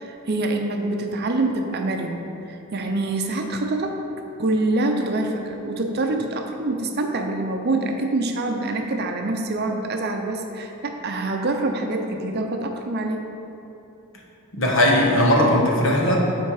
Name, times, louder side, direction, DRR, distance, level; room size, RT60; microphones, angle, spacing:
voice 1, 0.0-2.2 2.5-4.0 4.4-13.2, right 2 dB, 50° right, 3 dB, 0.6 m, -25 dB
voice 2, 14.5-16.2, left 1 dB, 60° left, -2 dB, 1.2 m, -18 dB
8.4 x 4.4 x 4.8 m, 2.9 s
head